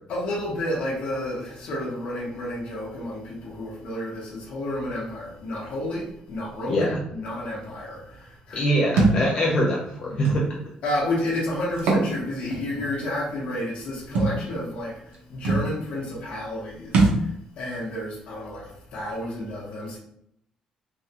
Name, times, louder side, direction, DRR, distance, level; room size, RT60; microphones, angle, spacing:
voice 1, 0.1-8.6 9.0-9.1 10.1-10.2 10.8-20.0, left 1 dB, 60° left, -5 dB, 0.9 m, -31 dB
voice 2, 6.7-7.0 8.5-10.7, equal, 40° left, -3 dB, 0.5 m, -24 dB
Thump thud, 9.0-9.2 10.2-10.4 11.7-12.1 12.5-12.6 14.1-14.4 15.1-15.2 15.4-15.7 16.9-17.2, right 3 dB, 90° right, 0.8 m, -20 dB
3.4 x 2.2 x 2.8 m, 0.73 s
cardioid pair, 175°, 2 cm